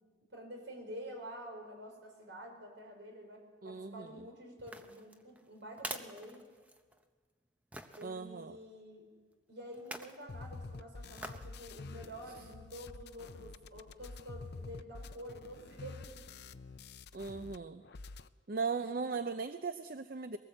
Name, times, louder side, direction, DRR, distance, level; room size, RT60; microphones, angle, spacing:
voice 1, 0.3-6.5 8.0-9.0 9.5-16.2 18.8-19.2, equal, 65° right, 2 dB, 5.1 m, -49 dB
voice 2, 3.6-4.1 8.0-8.6 17.1-17.8 18.5-20.4, right 4 dB, 50° right, 10 dB, 0.6 m, -38 dB
sound 1, 4.6-7.0 7.7-8.1 9.7-10.2 11.2-11.5 12.0-12.1, right 1 dB, 10° right, 0.8 m, -46 dB
sound 2, 10.3-17.6 17.8-18.3, left 3 dB, 55° left, 0.6 m, -48 dB
22.5 x 18.5 x 7.9 m, 1.5 s
head